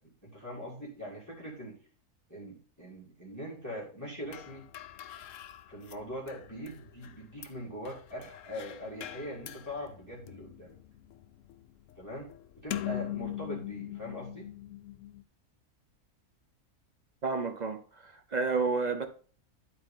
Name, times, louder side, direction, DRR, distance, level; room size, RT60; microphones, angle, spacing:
voice 1, 0.2-1.7 2.3-4.7 5.7-10.8 12.0-12.3 12.6-14.5, equal, 10° left, 2.3 m, -42 dB
sound 1, 4.3-15.2, left 13 dB, 65° left, 0.9 m, -42 dB
voice 2, 17.2-19.0, right 4 dB, 45° right, 0.6 m, -31 dB
12.0 x 4.2 x 3.7 m
omnidirectional pair, 1.6 m